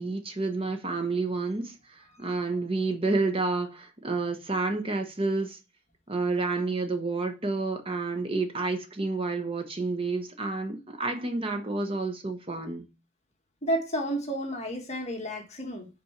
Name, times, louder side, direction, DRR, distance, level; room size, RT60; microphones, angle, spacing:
voice 1, 0.0-5.6 6.1-12.9, right 3 dB, 30° right, 1.0 m, -29 dB
voice 2, 13.6-15.9, right 1 dB, 35° left, 1.6 m, -31 dB
5.8 x 4.4 x 5.7 m
head